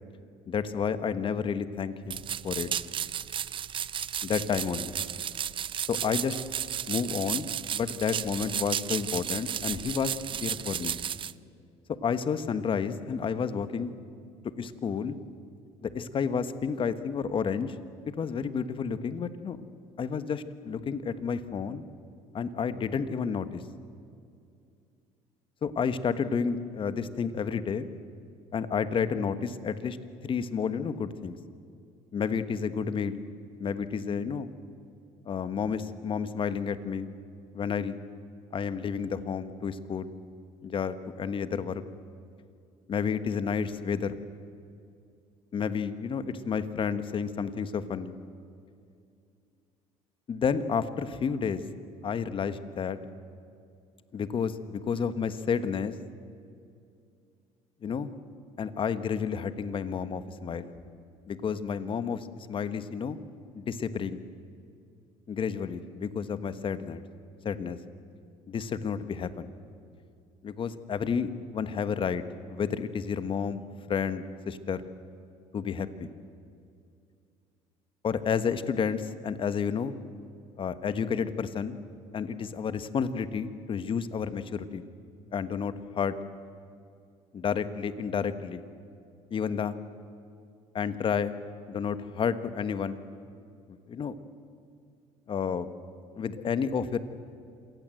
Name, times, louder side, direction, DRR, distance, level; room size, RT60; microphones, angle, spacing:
voice 1, 0.5-2.7 4.2-5.0 5.9-6.4 6.9-11.0 12.0-13.9 14.6-15.2 15.8-17.8 18.2-19.6 20.0-21.8 22.3-23.6 25.6-27.9 28.5-30.0 30.2-31.4 32.1-33.2 33.6-34.5 35.2-37.1 37.5-38.0 38.5-40.2 40.6-41.8 42.9-44.2 45.5-48.2 50.3-51.6 52.0-53.0 54.1-55.9 57.8-58.2 58.6-60.7 61.2-63.2 63.5-64.2 65.3-67.0 67.4-67.8 68.5-69.5 70.4-72.2 72.5-74.9 75.5-76.1 78.0-80.0 80.6-81.8 82.1-84.9 85.3-86.2 87.3-88.6 89.3-89.8 90.7-91.3 91.7-93.0 93.7-94.1 95.3-95.7 96.2-97.0, left 6 dB, 40° left, 12 dB, 1.4 m, -31 dB
sound 1, 2.1-11.3, right 9 dB, 40° right, 0.5 m, -33 dB
27.0 x 19.0 x 7.8 m, 2.4 s
supercardioid pair, 100°, 14 cm